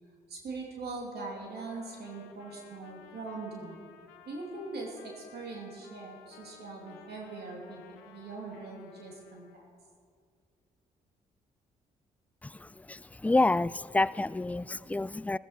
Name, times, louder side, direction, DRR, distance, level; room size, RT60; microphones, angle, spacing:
voice 1, 0.3-3.8 4.2-9.7, right 3 dB, 65° right, -1 dB, 2.6 m, -41 dB
Trumpet, 1.1-9.6, left 8 dB, 85° left, 0.9 m, -57 dB
voice 2, 12.4-15.4, left 2 dB, 10° left, 19 dB, 0.3 m, -29 dB
15.0 x 13.0 x 4.4 m, 2.1 s
hypercardioid pair, 45°, 18 cm